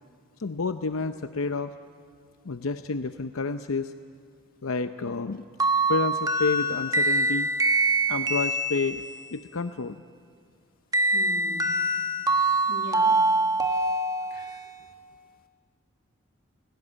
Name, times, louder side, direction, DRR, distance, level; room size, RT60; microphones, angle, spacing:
voice 1, 0.4-1.7 2.4-3.9 4.6-5.4 5.9-7.5 8.1-9.0 9.3-10.0, left 4 dB, 75° left, 9 dB, 0.7 m, -29 dB
sound 1, 5.6-9.3 10.9-14.7, right 2 dB, 15° right, 1.4 m, -24 dB
voice 2, 11.1-11.8 12.7-13.2 14.3-14.5, left 1 dB, 40° left, 4 dB, 2.0 m, -40 dB
29.5 x 18.0 x 9.9 m, 2.1 s
head